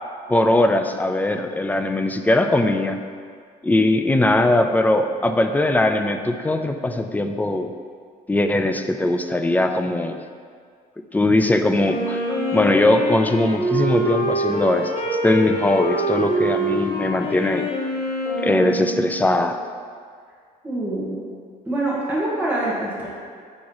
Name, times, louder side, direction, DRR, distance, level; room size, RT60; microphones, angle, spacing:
voice 1, 0.3-3.0 3.6-7.7 8.3-10.2 11.1-14.9 15.2-17.7 18.4-19.6, left 1 dB, 10° left, 6 dB, 0.3 m, -20 dB
Wind instrument woodwind instrument, 11.8-19.5, right 1 dB, 35° left, 1.4 m, -25 dB
voice 2, 20.6-21.3 21.7-23.1, right 2 dB, 10° right, -8 dB, 1.4 m, -25 dB
6.1 x 3.0 x 5.4 m, 2.1 s
cardioid pair, 110°, 17 cm